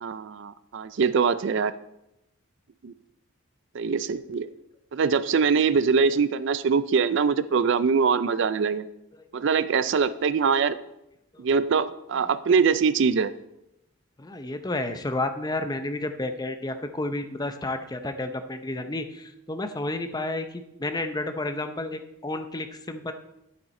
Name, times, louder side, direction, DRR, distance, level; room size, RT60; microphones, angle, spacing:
voice 1, 0.0-1.7 2.8-2.9 3.7-4.5 4.9-8.8 9.3-10.8 11.4-13.3, right 5 dB, 55° right, 15 dB, 0.4 m, -23 dB
voice 2, 14.2-23.1, left 2 dB, 20° left, 8 dB, 0.6 m, -31 dB
9.7 x 8.6 x 4.3 m, 0.86 s
head